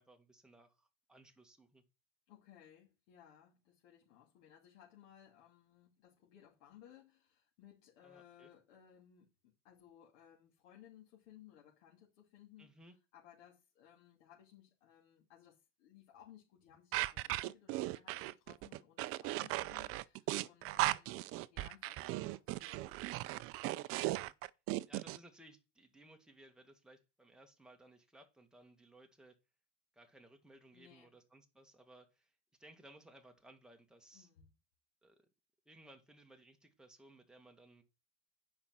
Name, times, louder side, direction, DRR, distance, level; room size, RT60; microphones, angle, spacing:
voice 1, 0.0-1.8 8.0-8.5 12.6-13.0 19.7-19.9 24.9-29.4 29.9-32.3 32.6-34.3 35.0-35.3 35.7-37.8, right 1 dB, ahead, 1.8 m, -61 dB
voice 2, 2.3-12.7 13.1-23.4 30.7-31.1 34.1-34.5, left 10 dB, 70° left, 2.7 m, -62 dB
sound 1, 16.9-25.2, right 18 dB, 35° right, 0.5 m, -37 dB
9.6 x 5.4 x 6.1 m
supercardioid pair, 125°, 39 cm